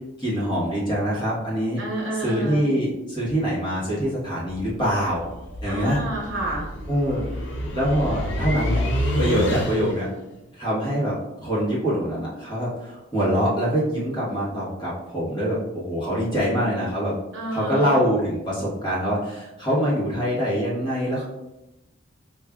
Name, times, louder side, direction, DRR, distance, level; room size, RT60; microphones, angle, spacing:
voice 1, 0.2-1.8 2.2-5.3 5.6-6.0 6.9-7.3 7.7-8.8 9.2-10.1 10.6-17.1 17.5-21.2, equal, 20° left, -7 dB, 1.0 m, -24 dB
voice 2, 1.8-2.6 5.7-6.7 17.3-17.9, right 1 dB, 65° right, -3 dB, 1.1 m, -29 dB
sound 1, 4.4-10.1, equal, 60° left, 0.6 m, -28 dB
4.9 x 2.4 x 2.3 m, 0.95 s
head